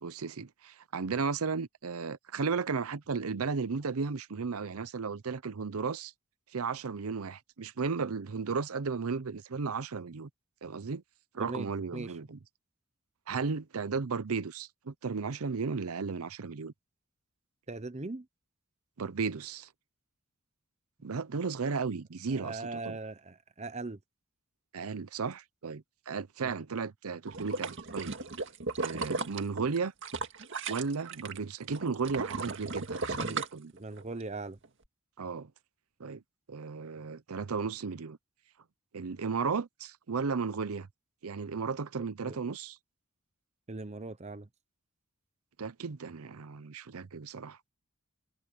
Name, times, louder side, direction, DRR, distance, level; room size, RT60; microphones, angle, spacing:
voice 1, 0.0-6.1 6.5-10.3 10.6-11.0 11.3-12.4 13.3-16.7 19.0-19.7 21.0-23.0 24.7-28.1 28.8-29.9 30.7-33.7 35.2-35.5 36.0-36.2 36.5-38.2 38.9-40.9 41.2-42.8 45.6-47.6, right 5 dB, 75° right, 0.7 m, -34 dB
voice 2, 11.4-12.1 17.7-18.3 22.3-24.0 26.4-26.5 33.1-33.4 33.7-34.6 42.2-42.4 43.7-44.5, right 3 dB, 30° right, 0.9 m, -40 dB
sound 1, 27.3-31.4 31.7-34.2 34.6-34.7, right 3 dB, 60° right, 2.0 m, -36 dB
head